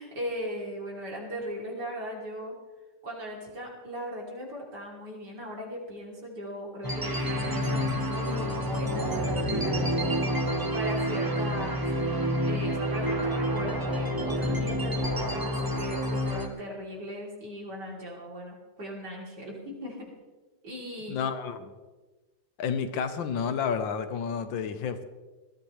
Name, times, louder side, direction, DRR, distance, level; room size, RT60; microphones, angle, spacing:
voice 1, 0.0-2.6 3.0-9.9 10.7-11.9 12.5-20.1 20.6-21.2, equal, 65° right, -2 dB, 3.8 m, -38 dB
sound 1, 6.8-16.5, equal, 15° right, 0.9 m, -28 dB
voice 2, 21.1-21.7 22.6-25.0, left 6 dB, 90° left, 9 dB, 1.7 m, -30 dB
21.0 x 13.5 x 3.2 m, 1.2 s
omnidirectional pair, 2.0 m